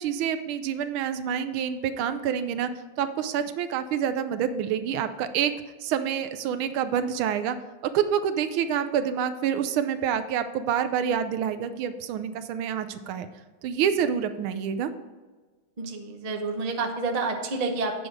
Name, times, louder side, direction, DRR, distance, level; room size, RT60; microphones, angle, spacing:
voice 1, 0.0-2.7 3.0-5.5 5.8-7.6 7.9-13.3 13.6-14.9, right 8 dB, 75° right, 11 dB, 1.4 m, -27 dB
voice 2, 15.8-17.9, right 3 dB, 40° right, 2 dB, 0.5 m, -29 dB
8.8 x 6.4 x 4.7 m, 1.3 s
omnidirectional pair, 2.4 m